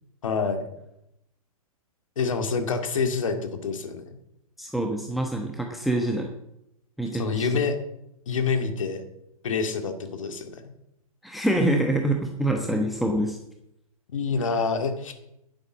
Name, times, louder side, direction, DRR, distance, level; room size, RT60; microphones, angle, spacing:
voice 1, 0.2-0.6 2.2-4.0 7.1-7.8 8.3-9.0 9.4-10.6 14.1-15.1, left 5 dB, 60° left, 6 dB, 2.2 m, -27 dB
voice 2, 4.6-6.3 7.0-7.6 11.2-13.4, right 1 dB, ahead, 2 dB, 1.1 m, -26 dB
10.5 x 10.5 x 7.3 m, 0.83 s
figure-of-eight pair, 110°, 19 cm